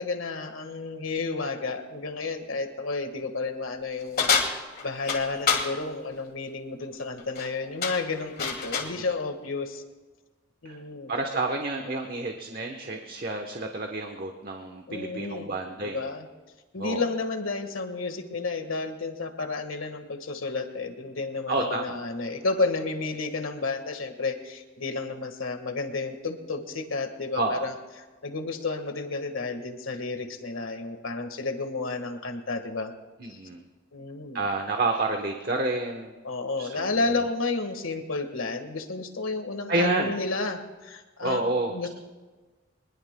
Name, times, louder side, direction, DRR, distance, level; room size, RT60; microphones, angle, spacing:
voice 1, 0.0-4.3 4.8-9.8 10.6-11.1 14.9-15.5 15.8-16.3 16.7-27.7 28.2-32.9 33.3-33.4 33.9-34.4 36.2-41.4 41.7-41.9, left 3 dB, 85° left, 7 dB, 1.6 m, -31 dB
sound 1, 4.2-5.7 7.2-7.5 7.8-9.0, left 5 dB, 50° left, 1.8 m, -27 dB
voice 2, 11.1-16.0 16.8-17.0 21.5-21.9 27.3-27.7 33.2-33.6 34.3-36.1 36.6-37.0 39.7-40.1 41.2-41.7, right 2 dB, 45° right, 3 dB, 1.0 m, -29 dB
23.5 x 20.0 x 2.2 m, 1.3 s
head